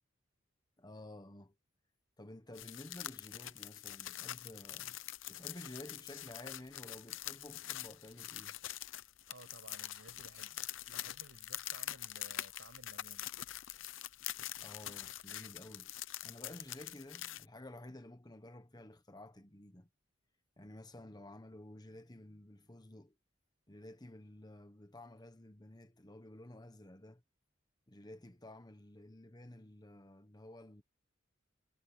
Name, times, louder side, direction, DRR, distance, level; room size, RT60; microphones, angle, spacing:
voice 1, 0.8-1.5 2.2-5.0 5.3-8.6 14.6-15.9 16.2-19.9 20.6-23.1 23.7-27.2 27.9-30.8, left 1 dB, 20° left, 1.3 m, -52 dB
sound 1, 2.5-17.5, left 13 dB, 80° left, 0.8 m, -45 dB
voice 2, 9.3-13.3, right 2 dB, 75° right, 7.6 m, -57 dB
head